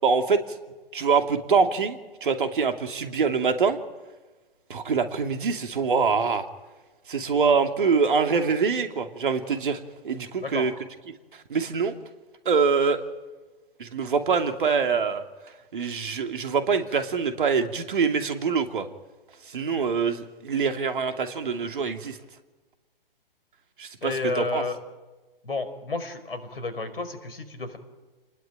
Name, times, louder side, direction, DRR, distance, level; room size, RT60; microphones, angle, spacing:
voice 1, 0.0-0.4 0.9-3.8 4.7-6.5 7.1-9.8 10.0-10.7 11.5-11.9 12.4-13.0 13.8-15.2 15.7-18.9 19.5-22.2 23.8-24.6, right 5 dB, 60° right, 7 dB, 2.7 m, -24 dB
voice 2, 10.4-10.7 24.0-24.8 25.4-27.8, left 3 dB, 70° left, 11 dB, 4.9 m, -31 dB
29.5 x 20.0 x 9.1 m, 1.2 s
figure-of-eight pair, 125°, 29 cm